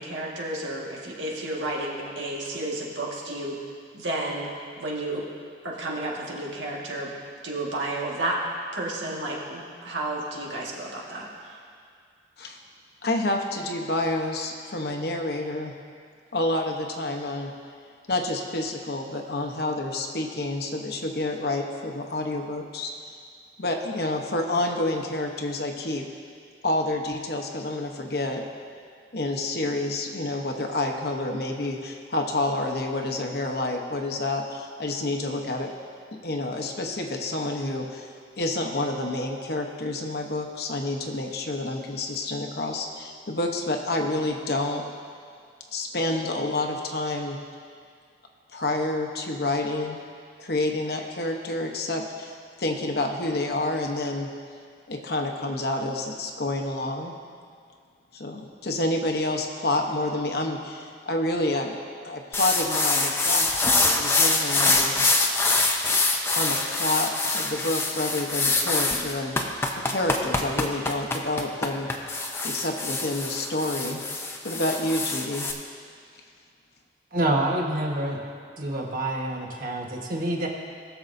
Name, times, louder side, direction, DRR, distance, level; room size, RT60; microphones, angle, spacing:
voice 1, 0.0-3.6 3.9-4.5 4.8-5.2 5.6-7.1 7.4-8.4 8.7-11.6, right 1 dB, 85° right, -3 dB, 1.7 m, -31 dB
voice 2, 13.0-15.7 16.3-17.5 18.1-22.9 23.6-26.1 26.6-28.4 29.1-35.7 36.1-38.1 38.4-44.8 45.7-47.4 48.5-50.0 50.4-52.3 52.6-54.3 54.9-57.1 58.1-61.8 62.0-65.0 66.3-71.9 72.4-74.0 74.4-75.5, left 2 dB, 55° left, 2 dB, 0.9 m, -28 dB
sound 1, 62.3-75.5, left 3 dB, 15° left, 0.6 m, -25 dB
voice 3, 77.1-78.2 78.6-80.5, right 1 dB, 45° right, -1 dB, 1.3 m, -27 dB
20.5 x 6.9 x 2.6 m, 2.2 s
head